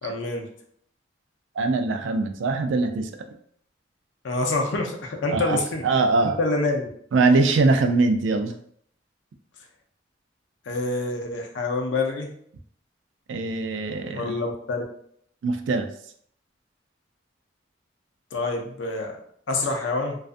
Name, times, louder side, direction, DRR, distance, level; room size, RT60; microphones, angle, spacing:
voice 1, 0.0-0.5 4.2-5.8 6.4-6.8 10.7-12.3 14.1-14.8 18.3-19.2 19.5-20.2, left 3 dB, 75° left, 3 dB, 0.5 m, -26 dB
voice 2, 1.6-3.1 5.3-6.4 7.1-8.6 13.3-14.4 15.4-15.9, right 3 dB, 75° right, 7 dB, 0.3 m, -22 dB
2.5 x 2.3 x 2.4 m, 0.65 s
head